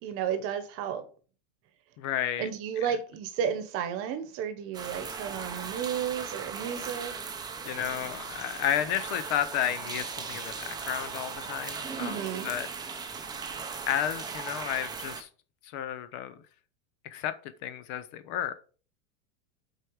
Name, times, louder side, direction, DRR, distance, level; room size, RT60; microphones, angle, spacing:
voice 1, 0.0-1.1 2.4-7.1 12.0-12.5, right 8 dB, 35° right, 1.1 m, -32 dB
voice 2, 2.0-2.5 7.7-12.2 12.4-12.7 13.9-15.3 15.7-16.4 17.0-17.3 17.6-18.5, left 11 dB, 35° left, 0.6 m, -32 dB
sound 1, 4.7-15.2, right 5 dB, 10° right, 0.7 m, -38 dB
8.1 x 4.6 x 4.7 m
supercardioid pair, 160°, 39 cm